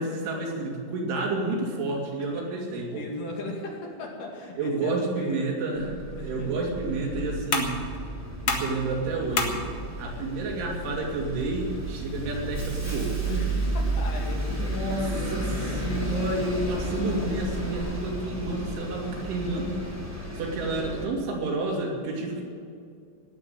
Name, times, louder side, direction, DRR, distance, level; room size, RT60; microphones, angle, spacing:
voice 1, 0.0-3.0 4.6-7.7 8.5-9.6 10.0-13.3 14.6-19.8 20.3-22.4, right 2 dB, 80° right, -1 dB, 5.2 m, -30 dB
voice 2, 2.9-5.4 6.2-6.5 13.2-15.8, left 1 dB, 50° left, 0 dB, 3.4 m, -37 dB
Bus, 5.8-21.1, right 1 dB, 5° right, 2.2 m, -32 dB
sound 1, 6.0-13.0, left 4 dB, 70° left, 1.3 m, -35 dB
17.5 x 8.7 x 9.1 m, 2.4 s
omnidirectional pair, 5.5 m